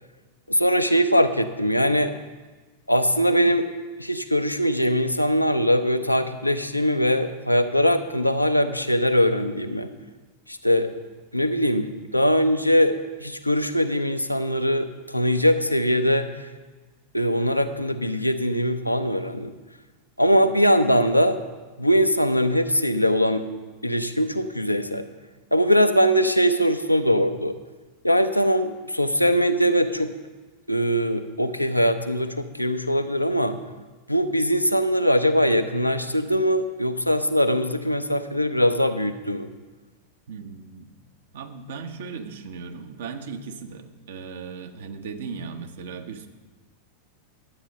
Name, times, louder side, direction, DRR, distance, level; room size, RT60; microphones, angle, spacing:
voice 1, 0.5-2.1 2.9-3.7 4.0-9.9 10.5-10.9 11.3-12.9 13.2-16.3 17.1-19.5 20.2-21.4 21.8-23.4 23.8-25.0 25.5-27.5 28.0-30.1 30.7-33.6 34.1-39.5, equal, 90° left, 8 dB, 0.6 m, -21 dB
voice 2, 40.3-40.9 41.3-46.3, right 5 dB, 60° right, 7 dB, 1.1 m, -37 dB
11.5 x 8.7 x 5.4 m, 1.3 s
figure-of-eight pair, 90°, 0 cm